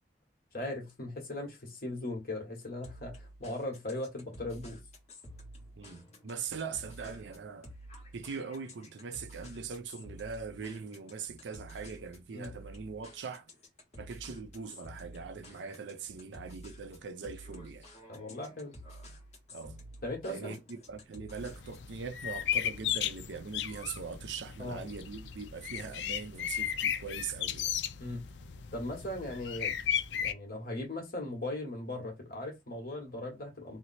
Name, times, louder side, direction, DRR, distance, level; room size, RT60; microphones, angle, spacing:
voice 1, 0.5-4.8 12.3-12.5 18.1-18.7 20.0-20.6 24.6-24.8 28.0-28.2 28.7-29.7 30.2-33.8, left 1 dB, 55° left, 1.2 m, -38 dB
sound 1, 2.8-21.9, equal, 40° left, 1.2 m, -51 dB
voice 2, 5.8-7.7 8.1-13.5 14.0-17.9 19.5-19.8 20.3-27.7, right 5 dB, 85° right, 0.5 m, -41 dB
sound 2, 21.4-30.3, left 9 dB, 75° left, 0.4 m, -35 dB
3.0 x 2.0 x 4.1 m
head